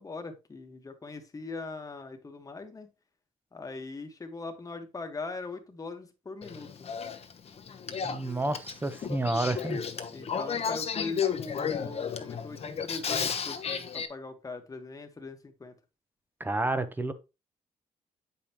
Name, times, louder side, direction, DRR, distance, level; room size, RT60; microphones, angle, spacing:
voice 1, 0.0-2.9 3.5-6.7 10.1-15.7, left 3 dB, 25° left, 1.3 m, -41 dB
Male speech man speaking / Female speech woman speaking / Conversation, 6.4-14.1, left 7 dB, 50° left, 0.9 m, -33 dB
voice 2, 8.0-9.8 16.4-17.1, right 2 dB, 15° right, 0.9 m, -30 dB
8.3 x 5.5 x 3.0 m
cardioid pair, 115°, 13 cm